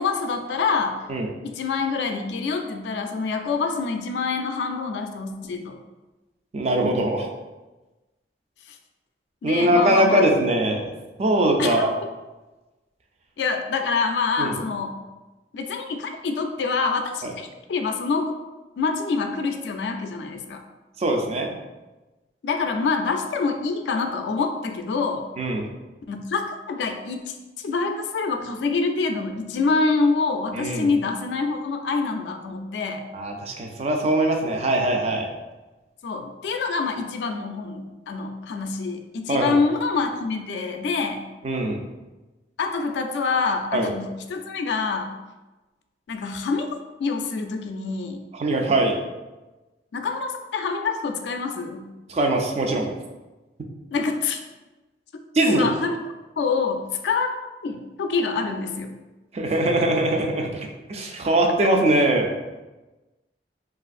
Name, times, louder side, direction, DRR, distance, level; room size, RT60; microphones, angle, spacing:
voice 1, 0.0-1.0 1.4-5.8 9.4-10.3 11.6-11.9 13.4-15.0 15.5-18.3 18.8-20.6 22.4-25.2 26.1-33.0 36.0-41.2 42.6-45.1 46.1-46.7 47.0-48.2 49.9-51.9 53.9-54.4 55.5-56.0 56.4-57.3 57.6-58.9, left 4 dB, 75° left, 5 dB, 0.3 m, -26 dB
voice 2, 6.5-7.3 9.4-10.9 11.2-11.9 14.4-14.6 17.2-17.3 21.0-21.5 25.4-25.7 30.5-30.9 33.1-35.3 39.3-39.6 41.4-41.8 43.7-43.9 48.3-48.9 52.1-52.9 55.3-55.7 59.3-60.6 60.9-62.3, right 1 dB, 35° right, 2 dB, 0.3 m, -21 dB
3.2 x 2.4 x 2.4 m, 1.1 s
head